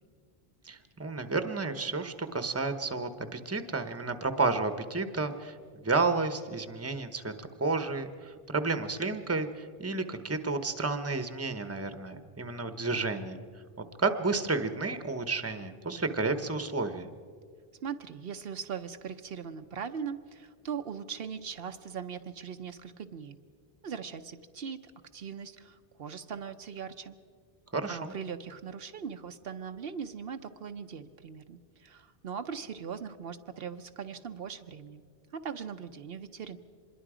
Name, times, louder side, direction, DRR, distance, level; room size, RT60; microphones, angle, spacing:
voice 1, 0.6-5.6 5.8-13.4 14.0-17.1 27.7-28.1, right 3 dB, 15° right, 9 dB, 0.9 m, -31 dB
voice 2, 17.8-23.4 23.8-27.2 27.9-35.0 35.3-36.6, right 7 dB, 70° right, 8 dB, 0.9 m, -40 dB
25.5 x 21.5 x 5.0 m, 2.1 s
omnidirectional pair, 1.0 m